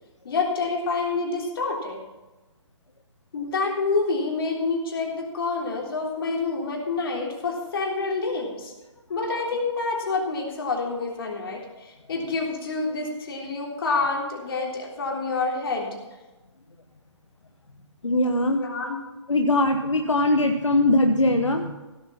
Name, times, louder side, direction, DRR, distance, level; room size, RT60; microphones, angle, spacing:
voice 1, 0.2-2.0 3.3-8.7 9.1-16.0 18.6-19.0, left 3 dB, 50° left, 0 dB, 3.6 m, -27 dB
voice 2, 18.0-18.6 19.3-21.7, left 1 dB, 85° left, 5 dB, 1.1 m, -21 dB
16.0 x 7.7 x 5.8 m, 1.1 s
figure-of-eight pair, 140°, 15 cm